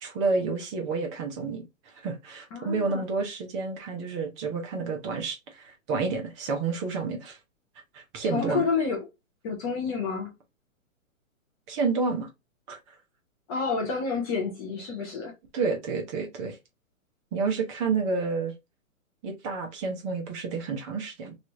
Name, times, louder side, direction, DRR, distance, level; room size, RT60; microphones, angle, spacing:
voice 1, 0.0-1.6 1.9-7.4 7.9-8.6 11.7-12.3 12.7-12.8 15.5-16.6 17.3-18.5 19.2-21.3, right 4 dB, 20° right, 0.7 m, -29 dB
voice 2, 2.5-3.0 8.3-9.1 9.4-10.4 13.5-15.3, left 5 dB, 20° left, 0.5 m, -29 dB
3.1 x 2.9 x 2.5 m
hypercardioid pair, 145°, 41 cm